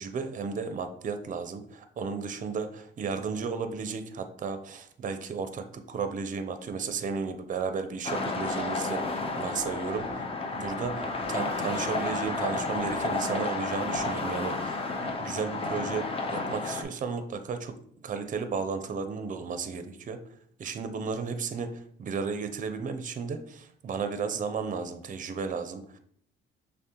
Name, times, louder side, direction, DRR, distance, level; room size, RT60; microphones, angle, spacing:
voice 1, 0.0-10.3 10.5-17.7 18.0-20.2 20.6-26.0, right 5 dB, 40° right, 9 dB, 0.5 m, -34 dB
sound 1, 8.0-16.8, left 3 dB, 30° left, 0.6 m, -31 dB
6.2 x 2.1 x 2.8 m, 0.64 s
cardioid pair, 90°, 20 cm